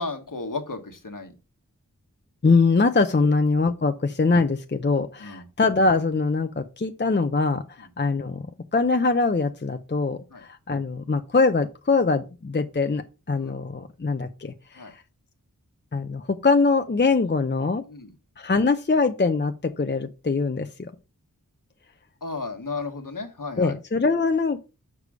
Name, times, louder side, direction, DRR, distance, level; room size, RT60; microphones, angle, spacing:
voice 1, 0.0-1.3 5.2-5.4 10.3-10.4 13.4-13.6 14.7-14.9 17.9-18.1 22.2-23.7, left 3 dB, 65° left, 5 dB, 1.5 m, -34 dB
voice 2, 2.4-8.4 8.7-15.0 15.9-17.8 18.4-20.9 23.6-24.6, left 4 dB, 30° left, 7 dB, 0.6 m, -23 dB
6.8 x 4.9 x 4.8 m, 0.30 s
wide cardioid pair, 50°, 35 cm